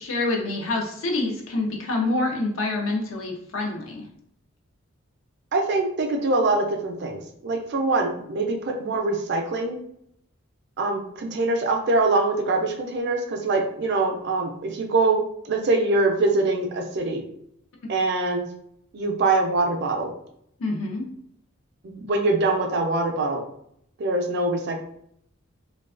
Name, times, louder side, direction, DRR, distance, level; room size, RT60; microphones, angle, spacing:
voice 1, 0.0-4.0 20.6-21.1, left 2 dB, 65° left, 0 dB, 0.5 m, -26 dB
voice 2, 5.5-9.8 10.8-17.2 17.9-18.4 18.9-20.1 21.8-23.4 24.0-24.8, right 2 dB, 50° right, 3 dB, 0.4 m, -24 dB
2.3 x 2.2 x 2.3 m, 0.71 s
head